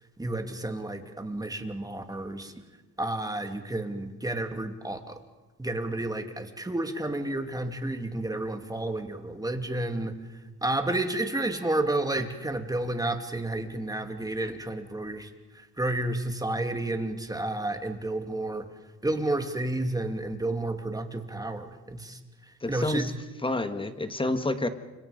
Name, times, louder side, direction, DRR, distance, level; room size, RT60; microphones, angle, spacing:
voice 1, 0.2-2.5 3.0-5.2 5.6-18.7 19.0-23.1, right 2 dB, 10° right, 6 dB, 2.7 m, -31 dB
voice 2, 22.6-23.0 23.4-24.7, left 2 dB, 15° left, 9 dB, 1.8 m, -28 dB
29.5 x 25.5 x 5.3 m, 1.1 s
cardioid pair, 90°, 30 cm